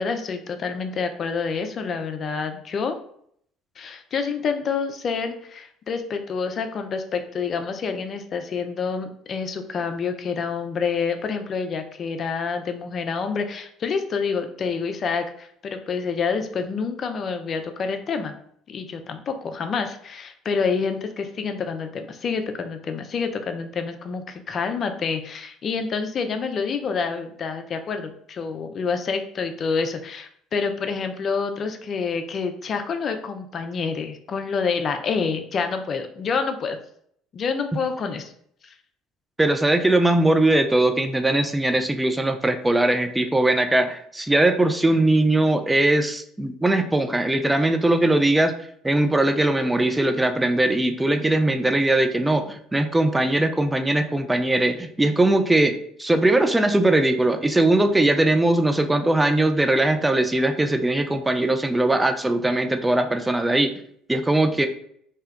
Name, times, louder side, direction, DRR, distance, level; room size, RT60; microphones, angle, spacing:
voice 1, 0.0-2.9 3.8-18.3 18.7-36.8 37.3-38.3 38.6-38.7, left 5 dB, 45° left, 7 dB, 0.4 m, -27 dB
voice 2, 39.4-48.6 48.8-63.8 64.1-64.7, right 2 dB, 15° right, 7 dB, 0.4 m, -20 dB
2.8 x 2.2 x 3.4 m, 0.66 s
hypercardioid pair, 60°, 0 cm